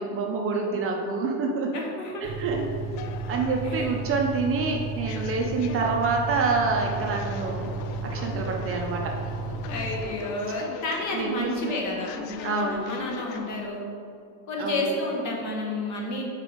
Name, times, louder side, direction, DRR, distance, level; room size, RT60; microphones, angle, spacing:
voice 1, 0.0-1.7 2.2-2.6 3.3-7.7 8.0-9.1 11.1-11.7 12.4-12.8 14.6-14.9, right 4 dB, 35° right, 1 dB, 0.6 m, -27 dB
voice 2, 1.7-2.3 3.6-4.0 9.7-13.9 14.5-16.2, left 2 dB, 45° left, -1 dB, 1.3 m, -31 dB
sound 1, 2.2-10.0, right 4 dB, 70° right, 0.9 m, -33 dB
sound 2, 2.5-13.7, left 8 dB, 75° left, 0.5 m, -42 dB
5.2 x 4.1 x 4.9 m, 2.4 s
cardioid pair, 140°, 39 cm